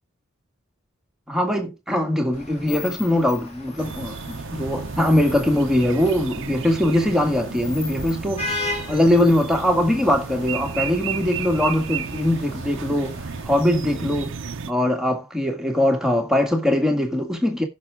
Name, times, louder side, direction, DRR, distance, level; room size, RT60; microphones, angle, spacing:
voice 1, 1.3-8.5 8.9-13.2 13.4-14.3 14.7-17.7, left 1 dB, 5° right, 1.9 m, -21 dB
Vehicle horn car horn honking / Traffic noise roadway noise, 2.3-13.4, left 2 dB, 30° left, 3.0 m, -37 dB
sound 1, 3.8-14.7, right 6 dB, 60° right, 0.7 m, -33 dB
15.0 x 6.2 x 3.6 m
head